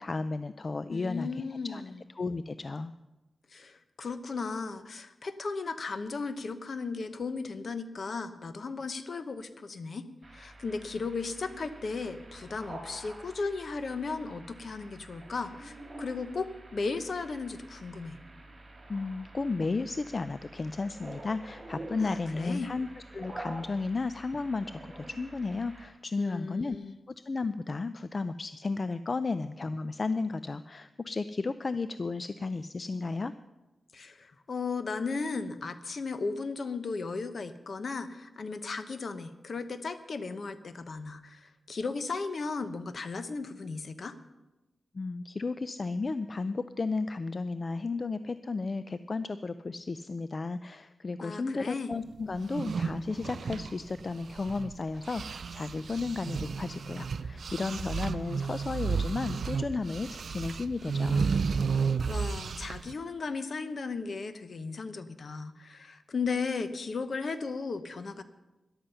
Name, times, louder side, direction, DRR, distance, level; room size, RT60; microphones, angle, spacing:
voice 1, 0.0-1.8 2.2-2.9 18.9-22.9 23.1-26.8 27.1-33.3 44.9-61.3, left 3 dB, 45° left, 13 dB, 0.4 m, -33 dB
voice 2, 0.9-2.0 3.5-10.1 10.3-18.2 22.0-22.7 26.2-26.9 33.9-44.2 51.2-51.9 62.1-68.2, left 4 dB, 60° left, 11 dB, 1.0 m, -36 dB
sound 1, 10.2-25.9, right 1 dB, 25° right, 3.8 m, -48 dB
sound 2, 52.4-54.7 55.0-62.9, right 5 dB, 70° right, 0.4 m, -32 dB
13.5 x 11.0 x 5.6 m, 1.0 s
cardioid pair, 75°, 0 cm